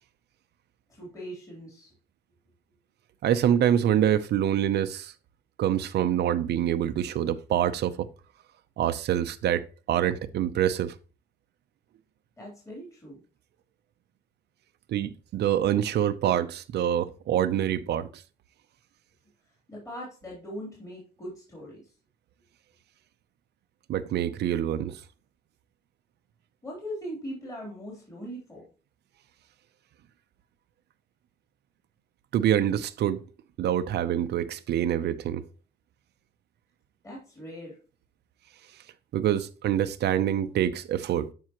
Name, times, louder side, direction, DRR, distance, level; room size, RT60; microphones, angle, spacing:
voice 1, 0.9-1.9 12.4-13.2 19.7-21.9 26.6-28.6 37.0-37.8, equal, 20° left, 3.5 m, -40 dB
voice 2, 3.2-5.1 5.6-8.1 8.8-10.9 14.9-18.1 23.9-25.0 32.3-33.2 33.6-35.4 39.1-41.3, right 10 dB, 80° right, 0.7 m, -26 dB
12.5 x 5.5 x 3.0 m
wide cardioid pair, 165°, 17 cm